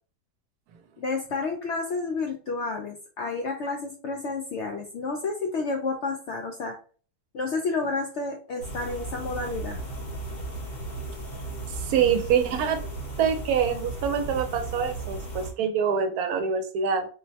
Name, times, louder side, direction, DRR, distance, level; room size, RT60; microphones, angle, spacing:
voice 1, 1.0-6.8 7.3-9.8, left 3 dB, 70° left, 3 dB, 0.6 m, -30 dB
sound 1, 8.6-15.5, right 2 dB, 45° left, 1.0 m, -36 dB
voice 2, 11.9-12.8 13.2-17.1, right 7 dB, 75° right, 6 dB, 1.1 m, -25 dB
4.3 x 2.1 x 2.7 m, 0.39 s
omnidirectional pair, 1.6 m